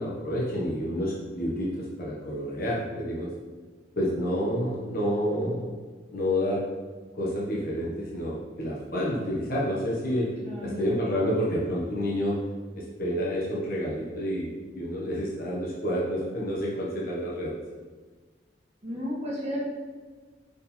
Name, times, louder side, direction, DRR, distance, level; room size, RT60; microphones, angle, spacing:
voice 1, 0.0-3.3 4.0-5.8 6.1-6.6 7.2-10.3 10.6-12.4 12.7-17.5, equal, 55° left, -5 dB, 1.3 m, -29 dB
voice 2, 10.4-10.9 18.8-19.6, equal, 35° right, -5 dB, 1.9 m, -33 dB
6.2 x 4.4 x 4.4 m, 1.4 s
head